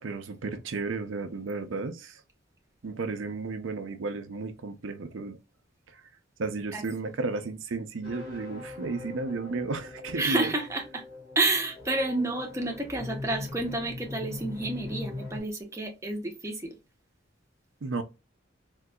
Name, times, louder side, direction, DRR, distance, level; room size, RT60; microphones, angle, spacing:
voice 1, 0.0-2.2 2.8-5.4 5.9-6.0 6.4-10.5 17.8-18.0, right 3 dB, 80° right, 0.5 m, -33 dB
voice 2, 6.7-7.1 10.2-11.0 11.4-16.8, right 2 dB, 15° right, 0.6 m, -30 dB
sound 1, 8.0-15.4, left 2 dB, 25° left, 1.6 m, -41 dB
3.7 x 2.5 x 2.3 m
head